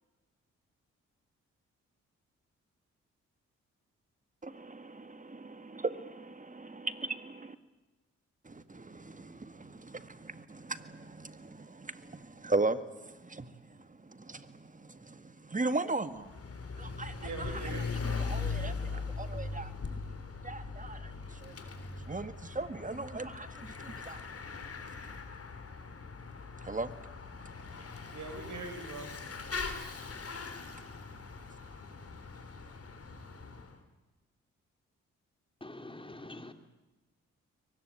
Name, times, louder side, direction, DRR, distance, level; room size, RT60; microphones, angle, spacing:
voice 1, 4.4-7.6 8.5-12.0 12.4-12.8 13.3-13.5 14.3-14.5 15.5-16.3 16.8-17.3 18.2-18.7 19.2-19.7 20.4-21.0 22.1-23.5 24.1-24.2 26.7-26.9, right 3 dB, 25° right, 11 dB, 1.9 m, -37 dB
Bicycle / Mechanisms, 16.1-33.7, left 4 dB, 45° left, 3.7 m, -40 dB
voice 2, 17.2-18.2 28.1-29.1, right 3 dB, 65° right, 5 dB, 6.8 m, -42 dB
voice 3, 35.6-36.5, left 2 dB, 15° left, 7 dB, 2.9 m, -45 dB
23.0 x 20.0 x 9.1 m, 1.2 s
supercardioid pair, 45°, 32 cm